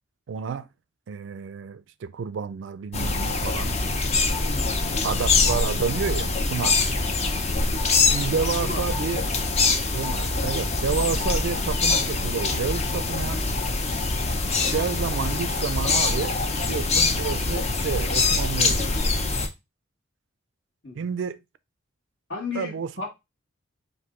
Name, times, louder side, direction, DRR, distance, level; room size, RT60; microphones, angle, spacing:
voice 1, 0.3-0.7 1.1-3.8 5.0-6.9 8.1-9.3 9.9-13.5 14.7-19.1 21.0-21.4 22.5-22.9, right 6 dB, 65° right, 0.3 m, -30 dB
sound 1, 2.9-19.5, left 3 dB, 30° left, 0.5 m, -24 dB
voice 2, 4.4-4.8 8.6-8.8 20.8-21.0 22.3-23.1, left 4 dB, 60° left, 1.7 m, -34 dB
4.6 x 2.7 x 3.6 m
head